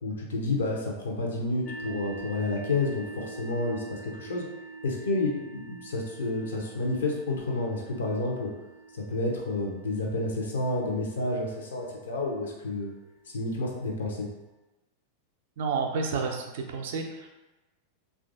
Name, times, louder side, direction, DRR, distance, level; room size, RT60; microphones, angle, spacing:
voice 1, 0.0-3.8 4.2-4.5 4.8-8.5 8.9-12.9 13.3-14.3, left 2 dB, 65° left, -1 dB, 0.6 m, -30 dB
sound 1, 1.6-13.2, right 4 dB, 15° left, 0.4 m, -45 dB
voice 2, 15.6-17.3, right 4 dB, 55° right, 3 dB, 0.4 m, -30 dB
3.1 x 2.4 x 2.5 m, 1.1 s
figure-of-eight pair, 90°, 0 cm